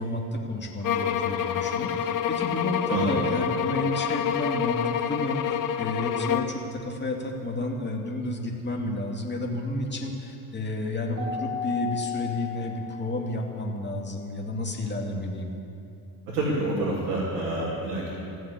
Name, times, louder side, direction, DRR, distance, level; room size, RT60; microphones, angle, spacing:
voice 1, 0.0-15.5, left 2 dB, 20° left, 1 dB, 2.5 m, -31 dB
sound 1, 0.8-6.6, left 8 dB, 45° left, 0.9 m, -27 dB
Keyboard (musical), 11.2-13.4, left 6 dB, 40° right, 2.8 m, -34 dB
voice 2, 16.3-18.2, right 2 dB, 85° right, -6 dB, 3.1 m, -27 dB
15.0 x 7.6 x 8.5 m, 2.7 s
hypercardioid pair, 75°, 46 cm